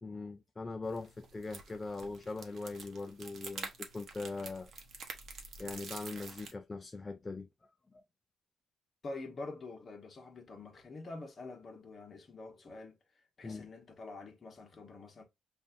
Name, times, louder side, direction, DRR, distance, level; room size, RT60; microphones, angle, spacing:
voice 1, 0.0-4.7 5.6-7.5 7.9-8.0 13.4-13.7, left 3 dB, 15° left, 0.3 m, -41 dB
sound 1, 0.8-6.5, right 4 dB, 45° right, 0.9 m, -48 dB
voice 2, 9.0-13.0 13.4-15.2, left 3 dB, 35° left, 1.1 m, -46 dB
5.3 x 2.6 x 2.6 m
cardioid pair, 150°, 0 cm